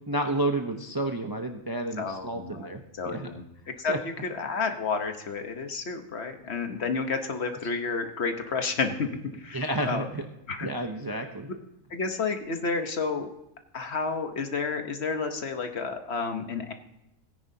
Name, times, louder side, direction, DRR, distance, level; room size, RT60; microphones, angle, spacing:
voice 1, 0.1-2.8 3.1-3.3 3.9-4.0 9.5-10.3 10.6-11.5, right 1 dB, 25° right, 4 dB, 0.5 m, -30 dB
voice 2, 2.0-2.7 3.0-3.4 3.8-3.9 4.2-9.1 9.4-10.0 10.5-10.7 11.9-13.3 13.7-16.7, left 4 dB, 55° left, 6 dB, 1.2 m, -30 dB
17.5 x 9.9 x 2.7 m, 0.88 s
omnidirectional pair, 1.5 m